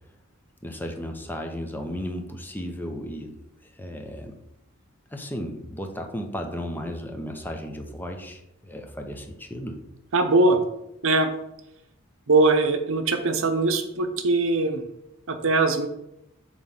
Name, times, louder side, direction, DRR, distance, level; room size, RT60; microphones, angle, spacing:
voice 1, 0.6-3.3 3.8-4.4 5.1-9.8, equal, 10° left, 4 dB, 0.8 m, -34 dB
voice 2, 10.1-10.6 11.0-11.3 12.3-14.8 15.3-15.9, right 2 dB, 65° right, 7 dB, 0.8 m, -21 dB
7.7 x 3.2 x 5.6 m, 0.86 s
head